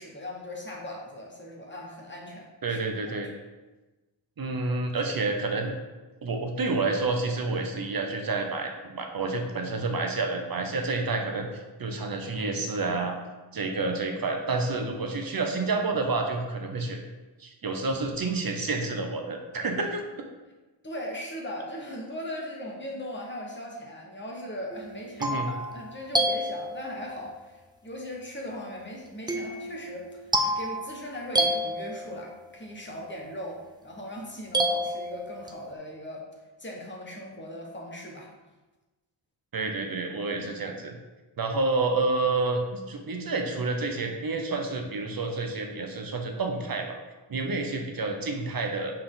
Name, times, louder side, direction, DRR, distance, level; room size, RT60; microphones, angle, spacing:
voice 1, 0.0-2.8 20.8-27.6 27.8-36.2 36.6-38.3, left 1 dB, 25° left, -1 dB, 1.2 m, -39 dB
voice 2, 2.6-3.3 4.4-5.7 6.2-13.1 13.5-17.0 17.4-20.0 25.2-25.5 39.5-41.0 41.4-46.9 47.3-48.9, right 3 dB, 50° right, 3 dB, 0.9 m, -29 dB
sound 1, 24.7-27.2 29.3-32.5 34.5-35.7, right 1 dB, 10° right, 0.5 m, -30 dB
7.6 x 4.3 x 3.8 m, 1.2 s
wide cardioid pair, 155°, 44 cm